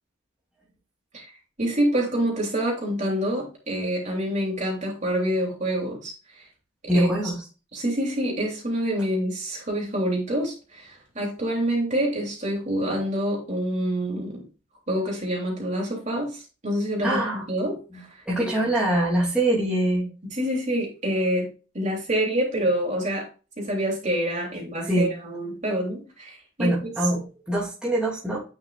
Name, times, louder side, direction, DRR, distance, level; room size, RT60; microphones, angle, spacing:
voice 1, 1.6-6.1 6.4-6.5 6.9-7.1 7.7-14.4 14.9-18.1 20.3-23.3 23.6-26.9, right 1 dB, 35° right, -2 dB, 3.3 m, -27 dB
voice 2, 6.9-7.3 17.0-17.4 17.9-18.0 18.3-20.1 24.8-25.1 26.6-28.4, right 1 dB, 5° right, -7 dB, 3.0 m, -24 dB
9.6 x 5.8 x 2.5 m, 0.33 s
head